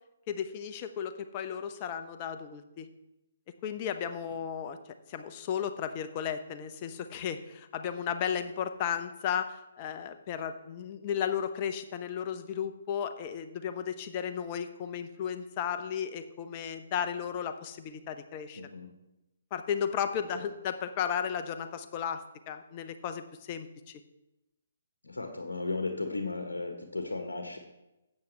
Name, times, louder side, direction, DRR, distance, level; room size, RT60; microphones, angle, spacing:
voice 1, 0.3-2.9 3.6-4.8 5.1-18.6 19.5-24.0, left 8 dB, 30° left, 8 dB, 0.8 m, -34 dB
voice 2, 18.6-18.9 20.3-20.5 25.0-27.6, left 3 dB, 70° left, 4 dB, 1.2 m, -35 dB
12.5 x 8.4 x 3.3 m, 0.95 s
figure-of-eight pair, 135°, 0 cm